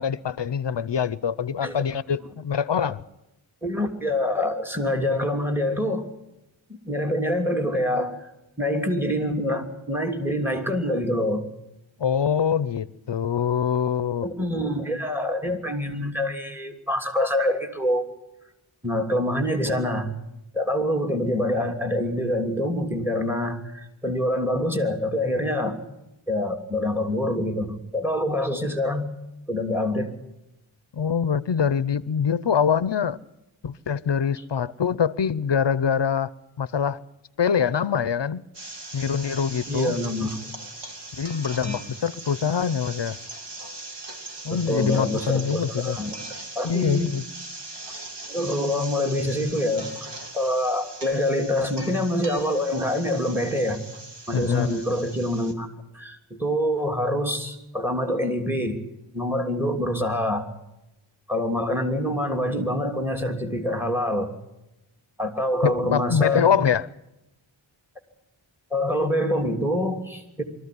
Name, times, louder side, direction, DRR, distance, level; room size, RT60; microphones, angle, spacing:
voice 1, 0.0-3.0 12.0-14.3 30.9-33.2 33.6-36.3 36.6-37.0 37.4-38.4 38.9-40.0 41.2-43.2 44.4-46.0 46.6-47.2 54.3-54.8 65.6-66.9, left 7 dB, 65° left, 0.8 m, -24 dB
voice 2, 3.6-6.1 6.7-8.3 8.6-11.5 14.2-18.0 18.8-20.1 20.5-25.8 26.3-29.1 29.5-30.1 39.7-40.4 41.7-41.8 44.5-46.1 46.5-47.1 48.3-49.9 50.3-53.8 54.3-55.7 55.9-58.8 59.1-60.5 61.3-64.3 65.2-66.6 68.7-70.4, left 1 dB, 5° right, 3.1 m, -25 dB
sound 1, 38.5-55.5, right 2 dB, 60° right, 3.2 m, -40 dB
24.0 x 14.5 x 9.5 m
wide cardioid pair, 60°, 47 cm